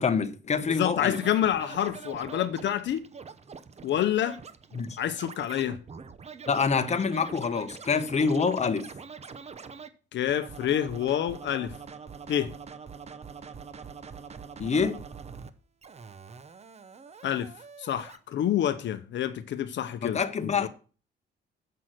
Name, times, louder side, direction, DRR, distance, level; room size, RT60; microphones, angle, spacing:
voice 1, 0.0-1.2 4.7-5.0 6.5-8.9 14.6-15.0 20.0-20.7, left 5 dB, 35° left, 0.9 m, -26 dB
voice 2, 0.7-3.0 3.8-4.4 5.0-5.8 10.1-11.7 12.3-12.5 17.2-17.5 17.8-20.7, left 11 dB, 65° left, 0.7 m, -28 dB
Scratching (performance technique), 1.1-9.9 10.3-15.5 15.8-18.2, right 6 dB, 35° right, 0.8 m, -44 dB
7.7 x 5.8 x 6.3 m
cardioid pair, 90°, 20 cm